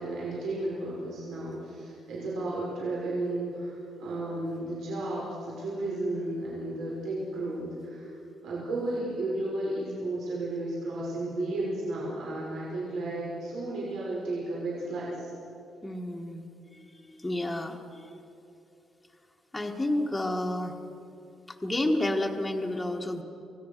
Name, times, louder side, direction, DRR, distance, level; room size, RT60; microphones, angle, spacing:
voice 1, 0.0-8.1 8.4-15.3, right 2 dB, 75° right, -5 dB, 5.8 m, -33 dB
voice 2, 15.8-16.5 16.7-18.1 19.5-20.7 21.5-23.2, left 1 dB, 10° left, 1 dB, 1.5 m, -30 dB
28.0 x 18.5 x 6.6 m, 2.9 s
cardioid pair, 175°, 0 cm